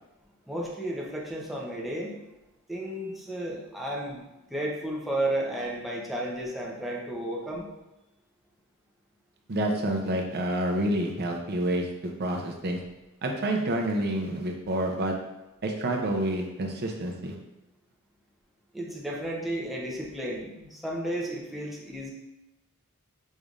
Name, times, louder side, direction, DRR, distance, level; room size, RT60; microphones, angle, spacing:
voice 1, 0.5-2.2 2.7-7.7 18.7-22.1, right 1 dB, ahead, -4 dB, 0.6 m, -33 dB
voice 2, 9.5-12.8 13.2-15.1 15.6-17.3, right 1 dB, 50° right, 2 dB, 0.6 m, -28 dB
5.3 x 3.2 x 2.4 m, 0.97 s
head